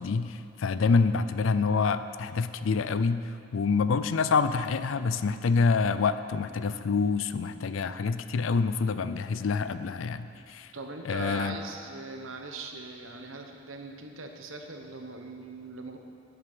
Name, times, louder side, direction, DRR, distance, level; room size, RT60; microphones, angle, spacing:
voice 1, 0.0-10.7 11.1-11.6, left 4 dB, 80° left, 12 dB, 0.4 m, -27 dB
voice 2, 10.7-16.0, right 3 dB, 85° right, 4 dB, 1.1 m, -40 dB
11.0 x 7.9 x 6.0 m, 2.5 s
head